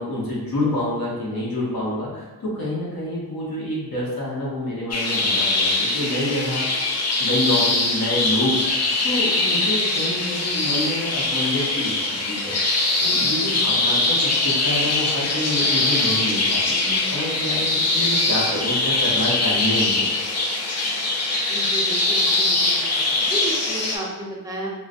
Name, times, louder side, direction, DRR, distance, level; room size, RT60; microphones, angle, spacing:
voice 1, 0.0-6.7 7.2-11.9 12.3-20.1, left 1 dB, 80° left, -6 dB, 1.0 m, -27 dB
sound 1, 4.9-24.0, left 2 dB, 45° left, 0.5 m, -22 dB
voice 2, 21.5-24.7, right 1 dB, 10° right, -3 dB, 0.6 m, -33 dB
3.8 x 2.2 x 2.5 m, 1.2 s
wide cardioid pair, 130°, 35 cm